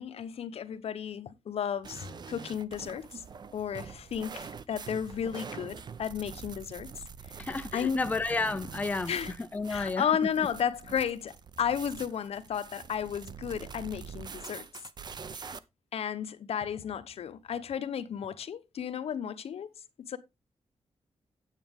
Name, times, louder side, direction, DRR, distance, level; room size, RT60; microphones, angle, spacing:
voice 1, 0.0-3.2 3.5-6.9 7.3-7.4 7.7-8.0 9.1-9.3 9.7-14.7 15.3-15.5 15.9-19.7 20.1-20.2, left 8 dB, 70° left, 0.8 m, -33 dB
sound 1, 1.8-15.6, right 6 dB, 40° right, 0.6 m, -45 dB
voice 2, 7.4-10.1, left 3 dB, 15° left, 0.5 m, -31 dB
9.2 x 8.1 x 3.5 m
wide cardioid pair, 155°, 11 cm